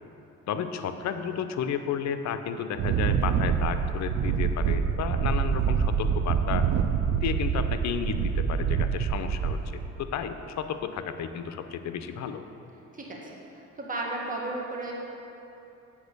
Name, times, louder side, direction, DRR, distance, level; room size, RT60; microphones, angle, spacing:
voice 1, 0.5-6.7 7.1-9.6 10.0-12.4, left 7 dB, 65° left, 9 dB, 0.6 m, -32 dB
Wind, 2.7-9.9, right 7 dB, 65° right, 0.5 m, -26 dB
voice 2, 12.9-13.3 13.8-14.9, right 2 dB, 25° right, -3 dB, 1.8 m, -33 dB
8.5 x 5.2 x 6.7 m, 3.0 s
cardioid pair, 90°, 30 cm